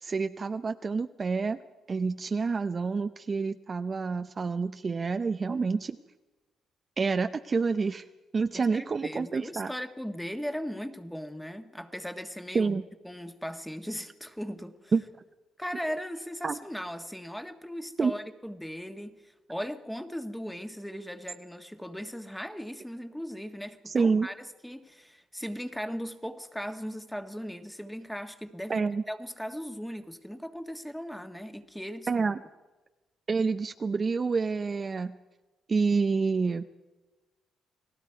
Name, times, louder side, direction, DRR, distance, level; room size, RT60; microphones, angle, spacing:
voice 1, 0.0-1.6 1.9-6.0 7.0-8.0 8.3-9.7 12.5-12.8 14.9-15.0 16.4-16.6 18.0-18.1 23.9-24.3 28.7-29.0 32.1-32.4 33.3-35.1 35.7-36.7, right 4 dB, 35° right, 8 dB, 0.6 m, -28 dB
voice 2, 8.5-14.9 15.6-32.3, equal, 5° left, 7 dB, 1.5 m, -38 dB
29.5 x 19.0 x 4.7 m, 1.1 s
cardioid pair, 90°, 0 cm